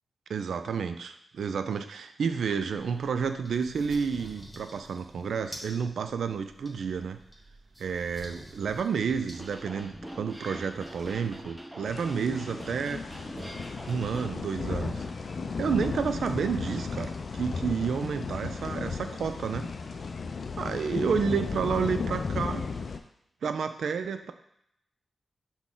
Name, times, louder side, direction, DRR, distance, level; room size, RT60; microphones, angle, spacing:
voice 1, 0.3-7.2 7.8-13.1 13.9-15.0 15.6-19.7 20.6-22.7 23.4-24.3, right 6 dB, 85° right, 9 dB, 0.3 m, -30 dB
sound 1, 2.6-11.4, equal, 5° left, 1.2 m, -49 dB
sound 2, 9.3-14.3, equal, 15° right, 0.7 m, -43 dB
sound 3, 11.9-23.0, left 4 dB, 60° left, 0.4 m, -34 dB
6.0 x 2.2 x 3.7 m, 0.76 s
cardioid pair, 80°, 0 cm